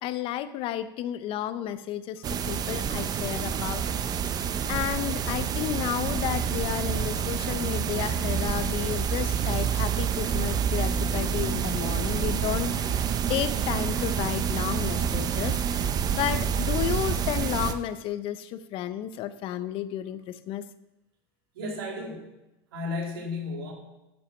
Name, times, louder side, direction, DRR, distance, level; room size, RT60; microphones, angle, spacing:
voice 1, 0.0-3.8 4.7-13.0 13.3-20.6, left 11 dB, 50° left, 13 dB, 0.7 m, -32 dB
sound 1, 2.2-17.7, right 7 dB, 35° right, 0.7 m, -28 dB
voice 2, 21.5-22.3 22.7-23.7, left 2 dB, 85° right, 0 dB, 2.4 m, -33 dB
9.8 x 5.8 x 5.8 m, 0.97 s
supercardioid pair, 105°, 12 cm